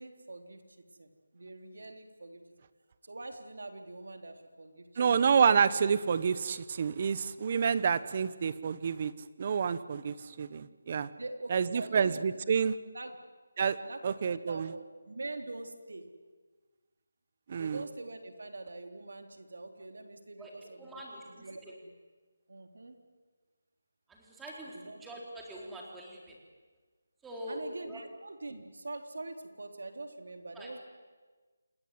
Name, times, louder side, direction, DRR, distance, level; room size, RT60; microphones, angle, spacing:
voice 1, 0.0-2.4 3.0-4.9 11.2-12.2 12.9-13.2 13.8-16.1 17.6-21.9 22.5-23.0 24.7-25.0 27.5-30.8, right 2 dB, 75° right, 5 dB, 3.8 m, -44 dB
voice 2, 5.0-9.1 9.4-11.1 11.5-12.7 13.6-13.8 14.0-14.7 17.5-17.8, right 6 dB, 35° right, 15 dB, 1.0 m, -28 dB
voice 3, 20.8-21.3 21.6-21.7 24.1-26.4 27.2-28.0 30.5-30.7, equal, 5° right, -2 dB, 4.0 m, -44 dB
28.0 x 20.5 x 9.6 m, 1.4 s
figure-of-eight pair, 170°, 0 cm